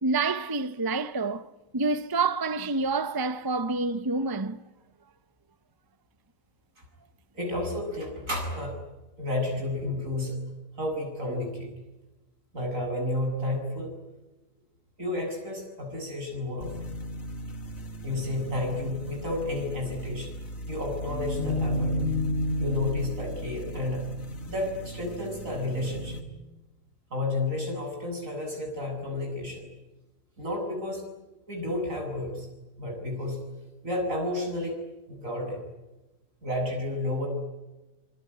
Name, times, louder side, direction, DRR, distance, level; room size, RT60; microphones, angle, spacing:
voice 1, 0.0-1.5 1.7-4.6, right 3 dB, 20° right, 0.8 m, -27 dB
voice 2, 7.3-8.7 9.2-10.4 10.8-11.7 12.5-13.9 15.0-16.9 18.0-20.3 20.7-21.9 22.6-24.1 24.5-26.2 27.1-29.6 30.4-31.0 31.5-32.5 32.8-33.4 33.8-34.8 35.1-35.6 36.4-37.3, left 2 dB, 75° right, 8.2 m, -31 dB
sound 1, 16.6-26.2, left 1 dB, 80° left, 3.1 m, -33 dB
26.5 x 21.5 x 9.7 m
omnidirectional pair, 1.4 m